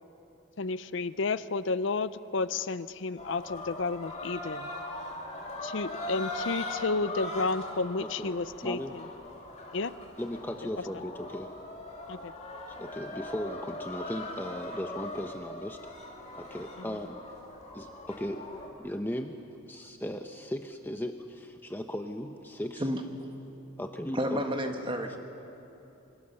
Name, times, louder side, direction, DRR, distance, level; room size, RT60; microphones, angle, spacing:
voice 1, 0.6-4.7 5.6-9.0 9.7-9.9 12.1-12.3, left 3 dB, 60° left, 14 dB, 0.6 m, -31 dB
sound 1, 3.2-18.7, left 1 dB, 35° left, 2.7 m, -40 dB
voice 2, 8.0-8.3 8.6-8.9 10.2-11.5 12.7-15.8 16.4-17.2 17.7-19.4 19.7-22.9 23.8-24.4, equal, 10° left, 5 dB, 0.7 m, -37 dB
voice 3, 24.1-25.2, equal, 25° right, 5 dB, 1.5 m, -30 dB
26.0 x 24.5 x 6.9 m, 2.9 s
head